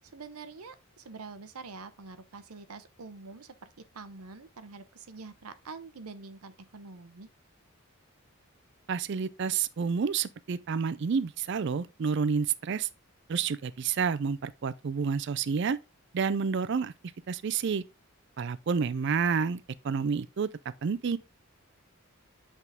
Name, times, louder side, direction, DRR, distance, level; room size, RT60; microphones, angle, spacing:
voice 1, 0.1-7.3, right 4 dB, 90° right, 0.8 m, -46 dB
voice 2, 8.9-12.9 13.3-15.8 16.1-16.9 17.3-17.8 18.4-20.5 20.8-21.2, right 6 dB, 55° right, 0.4 m, -29 dB
8.2 x 3.7 x 3.5 m
head